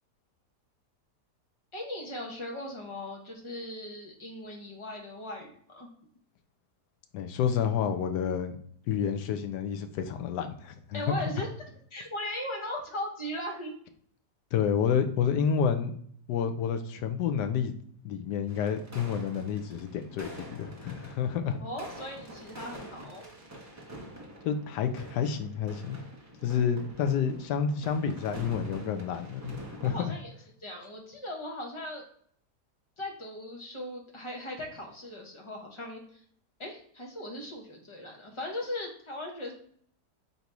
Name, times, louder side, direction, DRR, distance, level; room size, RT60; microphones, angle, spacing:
voice 1, 1.7-5.9 10.9-11.5 11.9-13.7 21.6-23.2 29.8-30.3 30.6-32.0 33.0-36.2 36.6-39.5, left 1 dB, 25° left, 0 dB, 0.7 m, -38 dB
voice 2, 7.1-8.6 8.9-11.1 14.5-16.0 16.3-17.7 18.0-21.6 24.4-26.0 26.4-30.1, left 7 dB, 80° left, 7 dB, 1.2 m, -29 dB
sound 1, 18.5-30.1, equal, 20° right, 0.5 m, -46 dB
4.0 x 2.7 x 4.6 m, 0.62 s
omnidirectional pair, 1.8 m